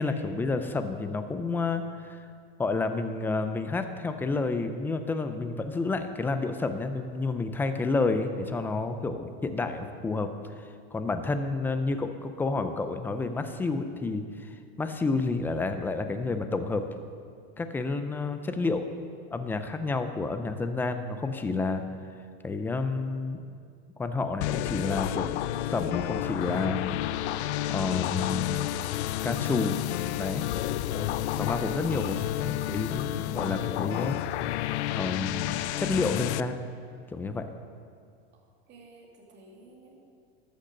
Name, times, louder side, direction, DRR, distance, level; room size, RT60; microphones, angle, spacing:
voice 1, 0.0-1.8 2.1-2.2 2.6-10.3 10.9-14.5 14.8-16.8 17.6-18.9 19.3-21.8 22.4-23.4 24.0-25.4 25.7-26.9 27.4-28.6 29.2-29.8 30.1-30.5 30.9-34.2 35.0-36.7 37.1-37.4, left 3 dB, 5° left, 8 dB, 0.4 m, -30 dB
sound 1, 24.4-36.4, left 14 dB, 80° left, 0.5 m, -30 dB
voice 2, 38.7-40.1, right 2 dB, 30° right, -1 dB, 2.3 m, -53 dB
13.0 x 6.5 x 6.3 m, 2.2 s
supercardioid pair, 145°, 33 cm